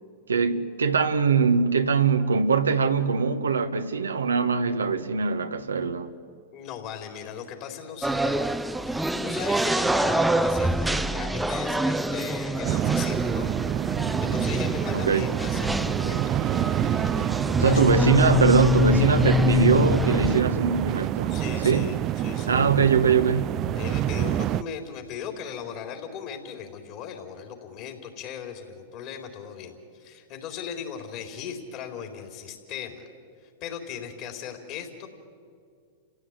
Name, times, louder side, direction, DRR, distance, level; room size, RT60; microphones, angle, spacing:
voice 1, 0.3-6.1 14.9-15.3 17.6-21.9 22.5-23.6, right 5 dB, 90° right, 1.4 m, -22 dB
voice 2, 6.5-8.4 8.9-13.5 14.2-16.2 17.6-18.1 21.3-22.6 23.7-33.0 33.6-35.1, left 8 dB, 50° left, 4.2 m, -38 dB
sound 1, 8.0-20.4, left 1 dB, 5° right, 0.8 m, -25 dB
sound 2, 12.6-24.6, right 13 dB, 35° right, 0.5 m, -27 dB
30.0 x 16.0 x 9.8 m
hypercardioid pair, 105°, 0 cm